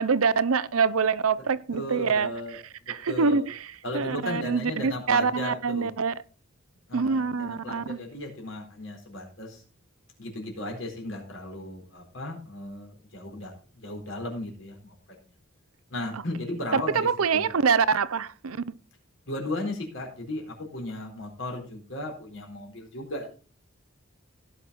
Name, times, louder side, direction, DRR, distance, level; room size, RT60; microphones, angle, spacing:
voice 1, 0.0-2.3 2.9-3.6 3.9-6.1 6.9-8.0 16.7-18.6, right 5 dB, 85° right, 0.7 m, -25 dB
voice 2, 1.7-2.6 2.9-3.5 3.8-5.9 6.9-9.6 10.2-13.5 13.8-14.9 15.9-17.5 19.3-23.3, left 1 dB, 65° left, 4.3 m, -35 dB
17.0 x 6.1 x 4.2 m
head